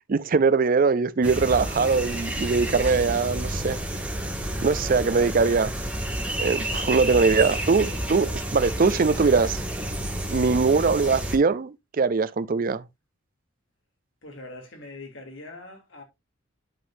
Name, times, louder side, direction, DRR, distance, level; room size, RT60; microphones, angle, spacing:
voice 1, 0.0-3.8 4.6-5.8 6.4-9.6 10.3-12.8, right 4 dB, 45° right, 0.4 m, -22 dB
sound 1, 1.2-11.4, right 1 dB, 5° right, 2.5 m, -30 dB
voice 2, 14.2-16.0, left 2 dB, 70° left, 2.7 m, -42 dB
11.5 x 5.5 x 2.6 m
head